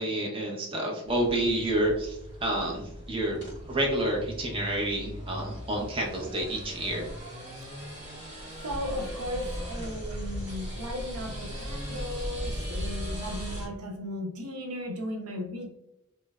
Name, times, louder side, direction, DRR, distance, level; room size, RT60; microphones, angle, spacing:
voice 1, 0.0-7.1, right 1 dB, 25° right, -1 dB, 0.6 m, -29 dB
sound 1, 1.1-13.7, equal, 55° right, 1.5 m, -38 dB
voice 2, 8.6-15.7, left 1 dB, 90° right, 3 dB, 0.7 m, -36 dB
3.1 x 3.1 x 2.3 m, 0.83 s
head